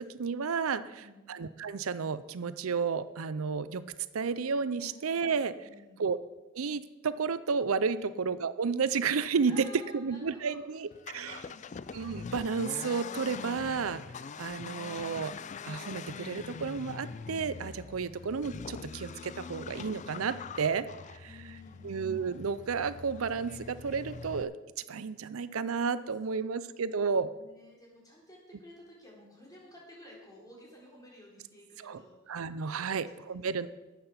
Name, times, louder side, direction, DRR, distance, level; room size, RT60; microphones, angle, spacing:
voice 1, 0.0-0.8 1.3-3.9 4.1-5.5 6.0-6.2 6.5-11.5 11.9-14.0 14.4-15.3 15.6-21.3 21.8-24.5 24.9-27.3 31.8-32.0 32.3-33.7, right 5 dB, 90° right, 14 dB, 0.6 m, -32 dB
voice 2, 0.7-1.2 4.8-6.1 7.9-8.1 9.5-10.8 11.1-11.7 21.2-21.9 26.3-26.6 27.3-32.5 32.8-33.5, left 1 dB, 20° left, -3 dB, 3.8 m, -54 dB
Accelerating revving vroom, 10.9-24.4, left 5 dB, 35° left, 0.3 m, -43 dB
12.5 x 8.7 x 5.8 m, 1.1 s
head